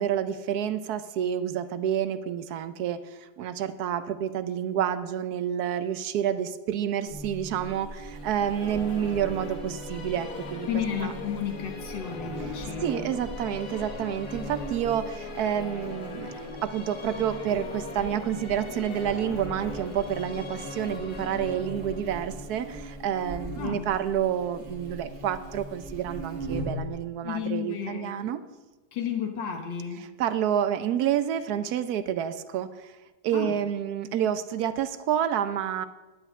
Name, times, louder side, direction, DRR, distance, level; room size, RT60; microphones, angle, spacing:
voice 1, 0.0-10.7 11.0-11.1 12.8-16.3 16.6-28.4 30.2-32.9 33.2-35.9, right 9 dB, 70° right, 12 dB, 1.0 m, -29 dB
Buzz, 7.1-26.9, right 1 dB, 30° right, 1.8 m, -41 dB
sound 1, 8.1-24.1, left 4 dB, 50° left, 1.5 m, -40 dB
voice 2, 10.7-13.1 23.6-23.9 27.2-28.2 28.9-30.0 33.3-33.6, left 8 dB, 80° left, 4 dB, 1.8 m, -32 dB
10.5 x 5.7 x 8.3 m, 1.2 s
omnidirectional pair, 2.0 m